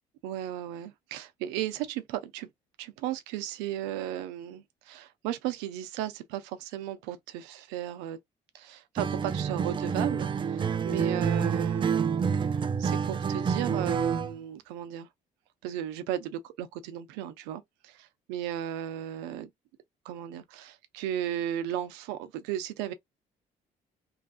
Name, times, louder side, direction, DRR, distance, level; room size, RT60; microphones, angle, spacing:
voice 1, 0.2-2.5 2.8-8.2 8.5-12.0 12.8-15.1 15.6-19.5 20.0-22.9, right 11 dB, 85° right, 0.5 m, -35 dB
Acoustic guitar, 9.0-14.4, right 6 dB, 30° right, 0.4 m, -28 dB
3.1 x 2.3 x 2.4 m
supercardioid pair, 65°, 17 cm